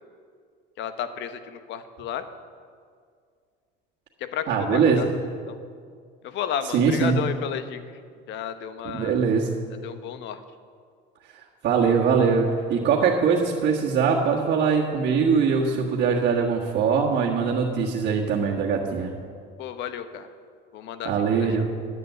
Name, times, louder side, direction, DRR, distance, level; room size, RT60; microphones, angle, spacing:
voice 1, 0.8-2.2 4.2-5.1 5.5-5.6 6.2-8.0 8.3-9.2 9.8-10.4 19.6-20.3 20.7-21.1 21.4-21.7, left 8 dB, 60° left, 11 dB, 0.9 m, -32 dB
voice 2, 4.5-5.0 6.7-7.2 8.8-9.5 11.6-19.1 21.0-21.7, right 6 dB, 55° right, -6 dB, 1.7 m, -22 dB
11.0 x 8.0 x 8.1 m, 2.1 s
cardioid pair, 110°, 21 cm